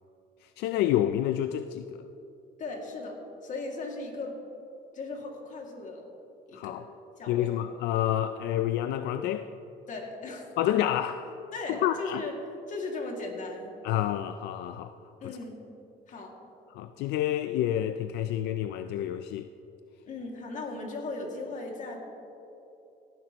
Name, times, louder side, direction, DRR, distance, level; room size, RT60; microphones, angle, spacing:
voice 1, 0.4-2.0 6.5-6.8 7.3-9.5 10.6-11.3 11.7-12.2 13.8-15.0 15.2-15.4 16.7-19.5, left 12 dB, 85° left, 0.4 m, -29 dB
voice 2, 2.6-4.4 4.9-6.0 6.5-6.8 7.2-7.5 9.9-10.5 11.5-12.3 12.7-13.8 15.2-15.6 16.1-16.3 20.1-22.0, left 3 dB, 50° left, 2.2 m, -37 dB
17.5 x 10.5 x 3.0 m
cardioid pair, 110°, 17 cm